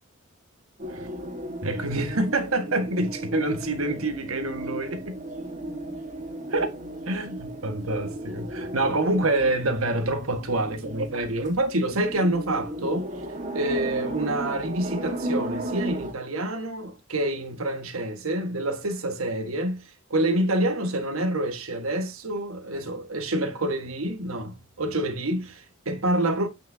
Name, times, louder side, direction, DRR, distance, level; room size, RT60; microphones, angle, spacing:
sound 1, 0.8-16.1, right 1 dB, 35° right, 1.7 m, -35 dB
voice 1, 1.6-5.2 6.5-6.7 7.1-13.1 13.5-19.8 20.1-26.5, right 1 dB, 85° right, 1.7 m, -27 dB
8.6 x 6.0 x 2.8 m
head